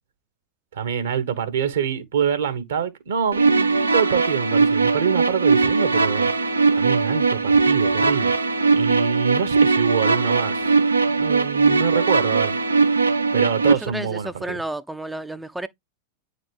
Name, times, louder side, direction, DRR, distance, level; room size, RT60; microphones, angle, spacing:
voice 1, 0.7-6.3 6.8-8.3 8.7-10.7 11.1-12.6 13.3-14.6, right 7 dB, 65° right, 1.2 m, -25 dB
sound 1, 3.3-13.7, right 4 dB, 80° right, 0.6 m, -19 dB
voice 2, 13.6-15.7, right 2 dB, 5° right, 0.5 m, -32 dB
9.2 x 4.1 x 3.3 m
figure-of-eight pair, 90°, 0 cm